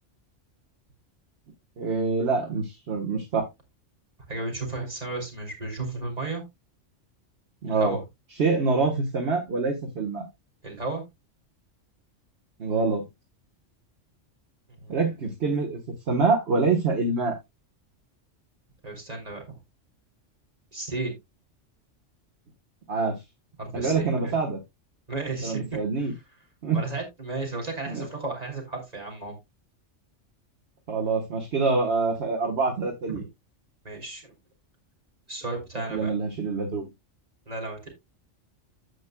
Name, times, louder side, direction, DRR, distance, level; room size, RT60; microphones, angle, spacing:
voice 1, 1.8-3.4 7.6-8.0 8.4-10.3 12.6-13.1 14.9-15.8 16.1-17.4 22.9-23.2 23.7-24.6 25.4-26.1 26.6-26.8 27.9-28.0 30.9-33.2 35.9-36.9, right 4 dB, 55° right, 1 dB, 1.5 m, -25 dB
voice 2, 4.3-6.4 7.7-8.0 10.6-11.0 14.8-15.0 18.8-19.6 20.7-21.1 23.6-24.3 25.1-25.8 26.7-29.3 33.1-33.2 33.8-34.3 35.3-36.1 37.5-37.9, right 3 dB, 30° right, 0 dB, 3.1 m, -33 dB
15.0 x 5.2 x 2.2 m, 0.20 s
omnidirectional pair, 1.3 m